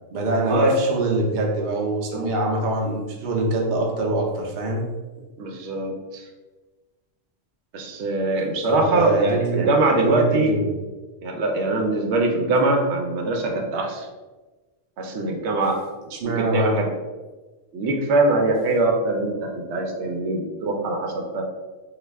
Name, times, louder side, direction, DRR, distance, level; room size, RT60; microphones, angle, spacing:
voice 1, 0.1-4.9 8.7-10.7 16.1-16.7, right 2 dB, 55° right, 0 dB, 0.7 m, -24 dB
voice 2, 5.4-6.3 7.7-10.6 11.2-14.1 15.0-15.8 16.2-16.9 17.7-21.4, right 2 dB, 85° right, 2 dB, 0.9 m, -22 dB
3.1 x 2.3 x 3.3 m, 1.2 s
omnidirectional pair, 1.1 m